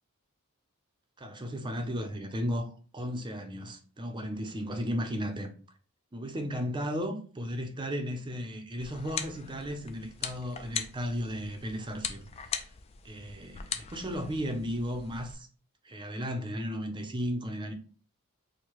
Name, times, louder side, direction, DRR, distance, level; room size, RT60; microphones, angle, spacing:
voice 1, 1.2-5.5 6.1-12.6 13.0-15.5 15.8-17.7, equal, 20° right, 0.6 m, -35 dB
sound 1, 8.8-15.3, left 7 dB, 30° left, 0.3 m, -40 dB
4.5 x 2.1 x 3.0 m
head